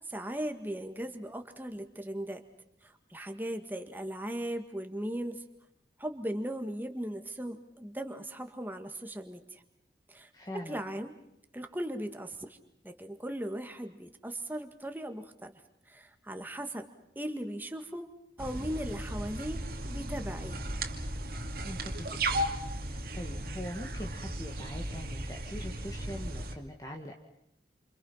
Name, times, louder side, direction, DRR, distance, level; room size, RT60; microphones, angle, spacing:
voice 1, 0.1-2.4 2.8-5.4 6.0-9.6 10.1-11.1 11.5-12.6 12.8-15.5 15.9-16.9 17.2-18.1 18.4-20.6, right 1 dB, 10° right, 6 dB, 1.8 m, -38 dB
voice 2, 10.3-10.8 21.6-22.5 22.8-27.1, equal, 20° left, 2 dB, 2.1 m, -43 dB
sound 1, 18.4-26.5, right 1 dB, 55° right, 2.5 m, -36 dB
28.5 x 28.0 x 5.7 m, 0.78 s
head